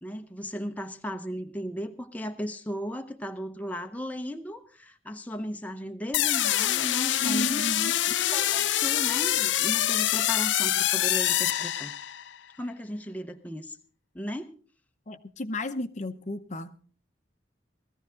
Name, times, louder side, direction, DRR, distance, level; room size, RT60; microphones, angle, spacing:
voice 1, 0.0-7.6 8.3-11.9 12.6-13.8 14.1-14.5, equal, 10° left, 6 dB, 0.8 m, -36 dB
sound 1, 6.1-12.3, left 13 dB, 75° left, 0.6 m, -25 dB
voice 2, 7.2-7.9 15.1-16.9, left 1 dB, 40° left, 11 dB, 0.8 m, -33 dB
17.5 x 14.5 x 3.8 m, 0.40 s
head